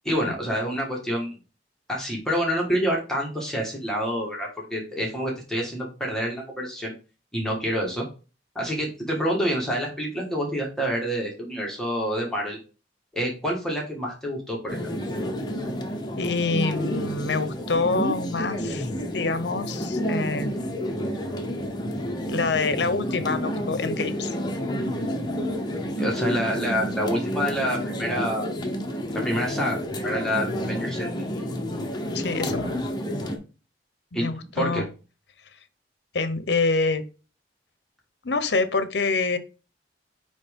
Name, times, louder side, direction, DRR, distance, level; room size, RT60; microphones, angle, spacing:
voice 1, 0.0-1.4 1.9-6.9 7.3-8.0 8.5-12.6 13.1-14.8 26.0-28.5 29.1-29.8 30.0-31.2 34.1-34.8, equal, 5° left, -2 dB, 1.5 m, -27 dB
sound 1, 14.7-33.4, equal, 25° left, 0.8 m, -30 dB
voice 2, 16.2-20.6 22.3-24.3 32.1-32.7 34.1-34.9 36.1-37.0 38.2-39.4, left 3 dB, 70° left, 12 dB, 0.8 m, -26 dB
8.8 x 3.2 x 3.5 m, 0.33 s
head